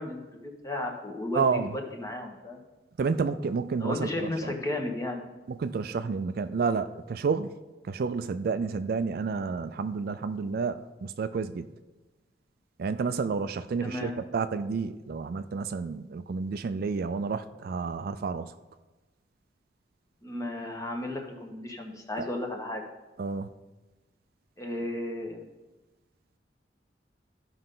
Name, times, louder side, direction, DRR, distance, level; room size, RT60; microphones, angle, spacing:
voice 1, 0.0-2.6 3.8-5.3 13.8-14.2 20.2-22.8 24.6-25.4, left 2 dB, 20° left, 2 dB, 1.2 m, -34 dB
voice 2, 1.3-1.7 3.0-4.3 5.6-7.5 7.8-11.7 12.8-18.5 23.2-23.5, right 5 dB, 55° right, 11 dB, 0.4 m, -30 dB
14.0 x 5.4 x 3.8 m, 1.2 s
head